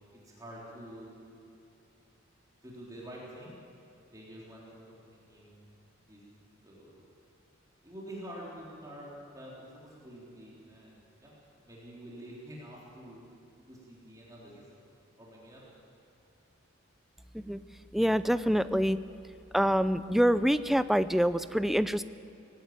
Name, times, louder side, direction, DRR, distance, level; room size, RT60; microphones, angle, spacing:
voice 1, 0.1-1.2 2.6-3.6 4.1-5.7 6.1-6.2 6.6-7.0 7.8-11.3 11.6-13.2 13.7-14.8 15.2-15.6, right 1 dB, 20° right, -5 dB, 3.7 m, -47 dB
voice 2, 17.9-19.0 19.5-22.0, equal, ahead, 13 dB, 0.4 m, -26 dB
19.5 x 16.0 x 8.9 m, 2.7 s
head